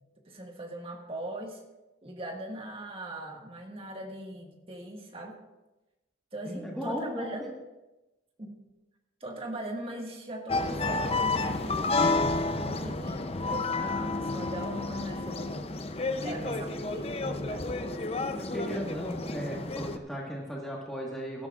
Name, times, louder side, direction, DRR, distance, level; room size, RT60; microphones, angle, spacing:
voice 1, 0.3-1.6 2.0-5.4 6.3-7.6 8.4-8.6 9.2-15.7 16.1-17.7, right 1 dB, 30° right, 1 dB, 1.7 m, -40 dB
voice 2, 6.4-7.5 14.2-14.4 16.4-16.6 18.3-21.5, equal, ahead, -4 dB, 1.6 m, -36 dB
sound 1, 10.5-20.0, left 3 dB, 35° left, 0.6 m, -30 dB
16.0 x 12.5 x 2.5 m, 1.0 s
head